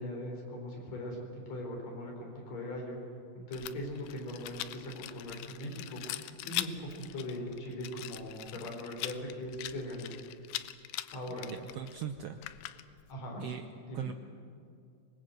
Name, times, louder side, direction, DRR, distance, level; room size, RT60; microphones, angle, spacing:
voice 1, 0.0-3.0 3.3-10.1 11.1-11.5 13.1-13.4 13.9-14.1, left 1 dB, 55° left, 0 dB, 5.5 m, -40 dB
Rattle, 3.5-13.1, left 14 dB, 90° left, 2.4 m, -42 dB
voice 2, 11.4-12.4 13.4-13.6 13.9-14.1, right 9 dB, 85° right, 7 dB, 1.3 m, -39 dB
25.5 x 20.5 x 7.9 m, 2.4 s
omnidirectional pair, 3.7 m